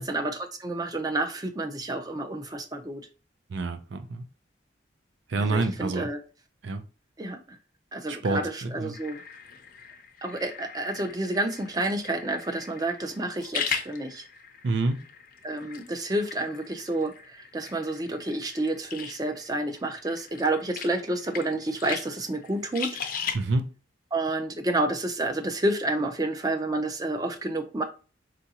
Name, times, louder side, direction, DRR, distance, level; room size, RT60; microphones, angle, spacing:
voice 1, 0.0-3.0 5.4-6.2 7.2-7.6 7.9-9.2 10.2-14.2 15.4-23.3 24.1-27.8, right 2 dB, 20° right, 0.5 m, -30 dB
voice 2, 3.5-4.3 5.3-6.1 6.6-6.8 8.1-8.9 14.6-15.0 23.3-23.7, right 3 dB, 80° right, 0.5 m, -28 dB
sound 1, 8.9-23.4, left 7 dB, 50° left, 0.5 m, -39 dB
4.6 x 2.5 x 2.8 m
head